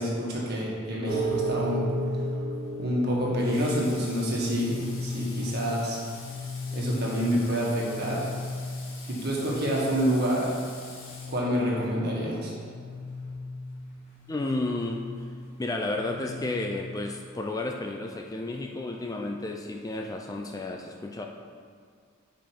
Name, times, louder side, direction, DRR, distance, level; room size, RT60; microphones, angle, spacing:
voice 1, 0.0-1.9 2.8-6.0 6.7-8.2 9.1-10.5 11.3-12.5, equal, 50° right, -4 dB, 1.6 m, -28 dB
sound 1, 1.1-16.9, left 1 dB, 35° left, 1.7 m, -35 dB
Water / Water tap faucet, 3.4-11.9, left 3 dB, 75° left, 1.5 m, -46 dB
voice 2, 14.3-15.1 15.6-21.3, left 2 dB, 15° left, 2 dB, 0.4 m, -32 dB
7.6 x 5.1 x 4.5 m, 2.1 s
head